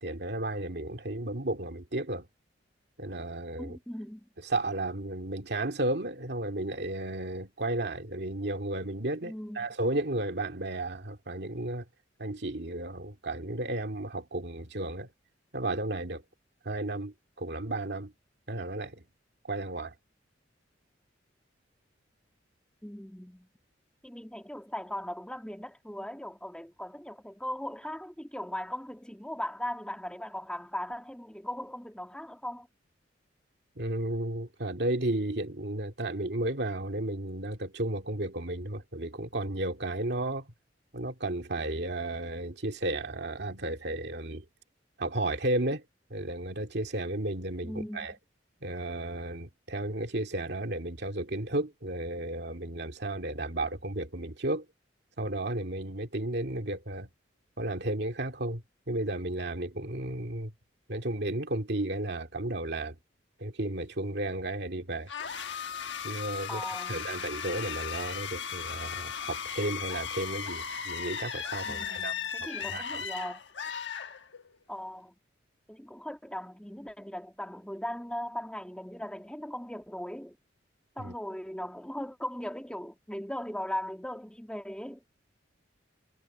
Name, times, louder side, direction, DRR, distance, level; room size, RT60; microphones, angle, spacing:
voice 1, 0.0-2.3 3.0-3.8 4.4-11.8 12.2-15.1 15.5-16.2 16.6-18.1 18.5-19.0 19.5-19.9 33.8-40.5 40.9-44.4 45.0-45.8 46.1-48.2 48.6-54.7 55.2-57.1 57.6-60.5 60.9-63.0 63.4-65.1 66.0-72.1 72.6-73.0 81.0-81.1, right 1 dB, 60° right, 2.3 m, -33 dB
voice 2, 3.6-4.3 9.2-9.7 22.8-23.5 24.0-32.7 47.6-48.1 66.5-67.1 71.6-73.4 74.7-75.2 75.7-80.4 81.0-85.0, left 1 dB, 5° left, 2.2 m, -38 dB
sound 1, 65.1-74.6, left 7 dB, 70° left, 1.3 m, -36 dB
head